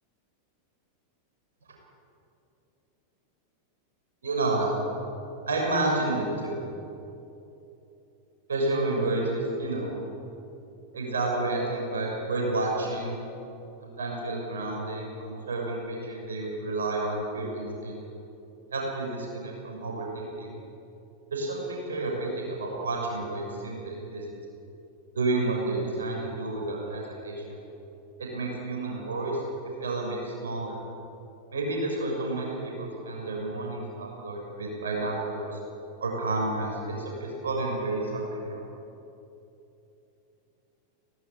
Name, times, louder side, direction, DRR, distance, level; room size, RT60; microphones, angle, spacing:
voice 1, 4.2-4.7 5.5-6.6 8.5-9.9 10.9-13.2 13.8-18.0 18.7-20.5 21.3-24.2 25.1-27.6 28.2-29.4 29.8-30.7 31.5-35.6 36.0-36.9 37.2-38.6, right 2 dB, 70° right, -1 dB, 6.6 m, -30 dB
24.0 x 18.5 x 9.1 m, 2.9 s
figure-of-eight pair, 90°, 0 cm